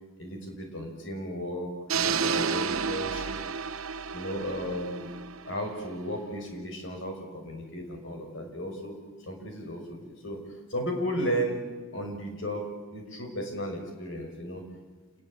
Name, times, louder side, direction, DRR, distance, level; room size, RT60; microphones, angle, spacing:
voice 1, 0.2-3.4 4.1-5.1 5.4-8.9 9.2-10.4 10.7-11.6 11.9-14.6, equal, 60° left, 3 dB, 6.1 m, -34 dB
sound 1, 1.9-5.9, right 6 dB, 85° right, 1.1 m, -31 dB
sound 2, 2.6-5.3, equal, 80° left, 5.5 m, -50 dB
28.0 x 20.5 x 8.8 m, 1.3 s
head